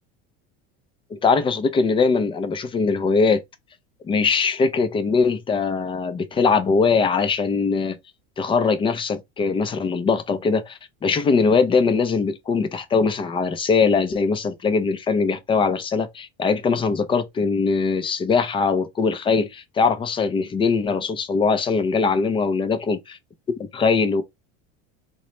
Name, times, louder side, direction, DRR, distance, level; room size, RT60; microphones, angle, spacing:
voice 1, 1.1-3.4 4.0-8.0 8.4-23.2 23.7-24.2, left 5 dB, 15° left, 0.4 m, -21 dB
3.9 x 2.2 x 3.0 m
cardioid pair, 140°, 31 cm